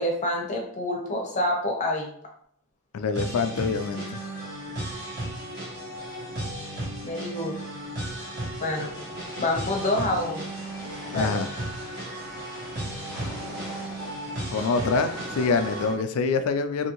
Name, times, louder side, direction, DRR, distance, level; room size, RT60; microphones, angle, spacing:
voice 1, 0.0-2.1 7.0-7.6 8.6-8.9 9.4-10.4 11.1-11.4, left 1 dB, 35° left, 0 dB, 0.7 m, -27 dB
voice 2, 2.9-4.2 11.1-11.5 14.5-16.9, left 4 dB, 75° left, 9 dB, 0.3 m, -25 dB
sound 1, 3.1-15.9, right 1 dB, 50° right, 1.3 m, -35 dB
sound 2, 8.6-15.9, equal, ahead, 1.4 m, -43 dB
2.8 x 2.6 x 2.9 m, 0.62 s
head